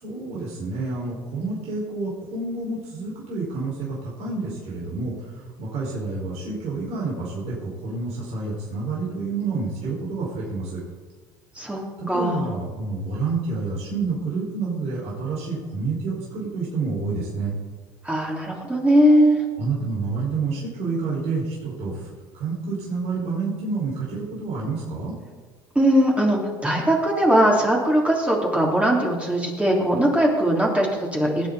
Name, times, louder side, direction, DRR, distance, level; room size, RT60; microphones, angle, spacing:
voice 1, 0.0-10.8 12.0-17.5 19.6-22.1 22.3-25.1, right 4 dB, 60° right, -5 dB, 4.9 m, -29 dB
voice 2, 12.1-12.5 18.0-19.4 25.7-31.5, equal, 10° right, -2 dB, 2.9 m, -20 dB
19.0 x 8.6 x 4.1 m, 1.4 s
supercardioid pair, 85°, 12 cm